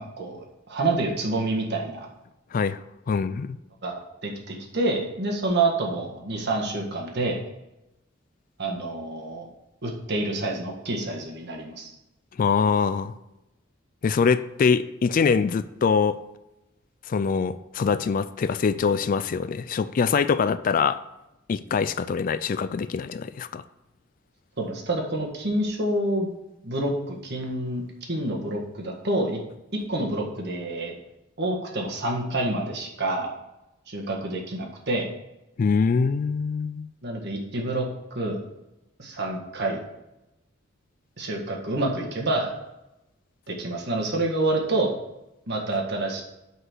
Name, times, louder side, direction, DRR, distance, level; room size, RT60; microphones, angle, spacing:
voice 1, 0.0-2.1 3.8-7.4 8.6-9.5 9.8-11.9 24.6-26.3 26.6-27.8 28.1-29.4 29.7-30.9 31.4-33.3 33.9-35.1 37.0-37.8 38.1-38.4 39.0-39.8 41.2-42.5 43.5-44.9 45.5-46.2, right 2 dB, 55° right, 0 dB, 1.6 m, -27 dB
voice 2, 3.1-3.6 12.4-13.1 14.0-16.2 17.1-21.0 21.5-23.6 35.6-36.9, left 5 dB, 45° left, 14 dB, 0.3 m, -23 dB
5.9 x 5.5 x 6.2 m, 0.92 s
head